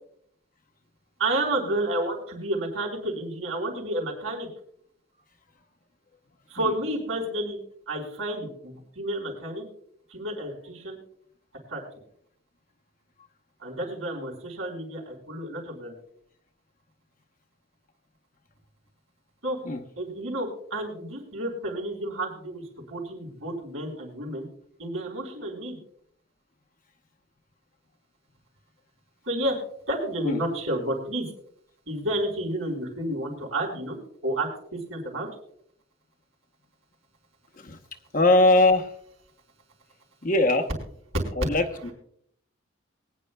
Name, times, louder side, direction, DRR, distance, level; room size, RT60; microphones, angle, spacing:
voice 1, 1.2-4.5 6.5-7.6 7.9-9.7 10.1-11.0 11.7-11.8 13.6-15.9 19.4-19.6 20.0-24.5 24.8-25.8 29.3-29.5 29.9-31.3 31.9-35.3, right 1 dB, 75° right, 0 dB, 4.8 m, -30 dB
voice 2, 38.1-38.9 40.2-40.7 41.4-41.9, left 2 dB, 40° left, 6 dB, 0.8 m, -21 dB
23.5 x 9.8 x 2.2 m, 0.65 s
head